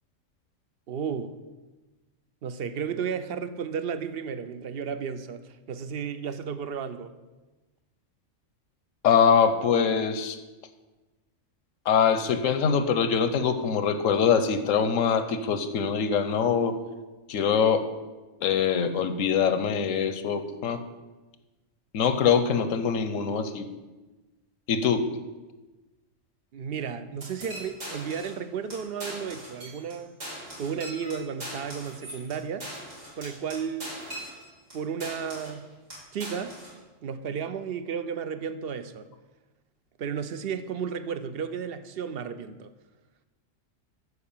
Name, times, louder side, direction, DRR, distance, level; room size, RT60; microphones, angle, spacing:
voice 1, 0.9-1.3 2.4-7.1 26.5-30.1 30.6-32.7 33.2-34.0 34.7-35.7 36.1-36.6 37.0-39.1 40.0-42.7, right 7 dB, 55° right, 0.8 m, -33 dB
voice 2, 9.0-10.4 11.9-16.7 17.3-17.9 18.4-20.8 21.9-23.7 24.7-25.1, left 7 dB, 85° left, 1.2 m, -23 dB
sound 1, 27.2-28.4 28.7-28.8 29.0-29.9 30.2-34.7 35.0-35.6 35.9-36.7, right 1 dB, 80° right, 4.0 m, -40 dB
13.0 x 4.8 x 7.2 m
omnidirectional pair, 1.3 m